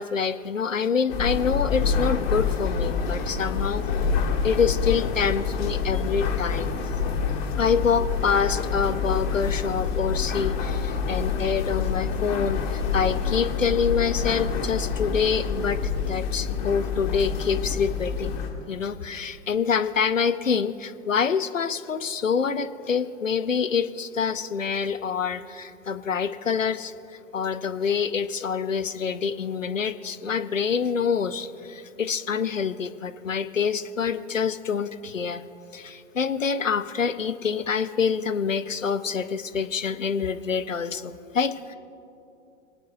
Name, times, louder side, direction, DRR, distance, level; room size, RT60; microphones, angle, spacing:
voice 1, 0.0-3.9 4.4-6.7 7.6-15.8 16.1-18.3 18.7-26.9 27.3-35.4 35.7-41.8, left 6 dB, 90° left, 13 dB, 0.6 m, -26 dB
sound 1, 1.1-18.5, left 5 dB, 50° left, 2.2 m, -27 dB
28.0 x 10.0 x 2.6 m, 2.7 s
figure-of-eight pair, 100°, 37 cm